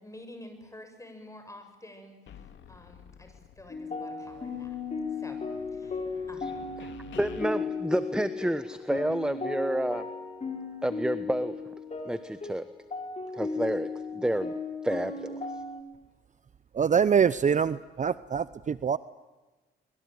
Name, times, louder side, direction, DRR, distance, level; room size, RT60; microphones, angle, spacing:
voice 1, 0.0-4.8 5.2-5.4 5.7-6.0 6.3-6.7, left 1 dB, 15° left, 7 dB, 7.0 m, -49 dB
sound 1, 2.3-3.9 4.2-7.4, left 8 dB, 70° left, 2.5 m, -50 dB
sound 2, 3.7-15.8, left 4 dB, 35° left, 5.1 m, -36 dB
voice 2, 7.2-10.1 10.8-11.6 12.0-12.7 13.3-14.5 14.8-15.5, right 1 dB, 5° right, 12 dB, 1.1 m, -30 dB
voice 3, 16.7-19.0, right 7 dB, 40° right, 16 dB, 0.8 m, -24 dB
24.5 x 22.5 x 9.4 m, 1.2 s
cardioid pair, 90°, 20 cm